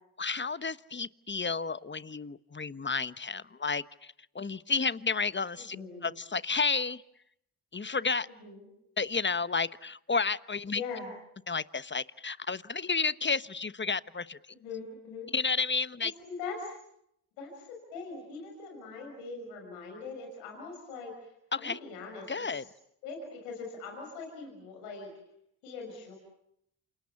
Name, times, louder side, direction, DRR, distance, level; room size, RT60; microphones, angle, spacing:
voice 1, 0.2-5.8 6.0-7.0 7.7-8.3 9.0-10.8 11.5-14.4 15.3-16.1 21.5-21.8 22.3-22.6, left 4 dB, 25° left, 16 dB, 1.1 m, -31 dB
voice 2, 5.7-6.1 8.4-8.6 10.7-11.1 14.5-15.3 16.3-16.7 17.4-21.2 21.6-22.6 23.0-25.1 25.6-26.2, left 4 dB, 90° left, 2 dB, 6.0 m, -41 dB
28.5 x 28.0 x 7.2 m, 0.75 s
hypercardioid pair, 40°, 46 cm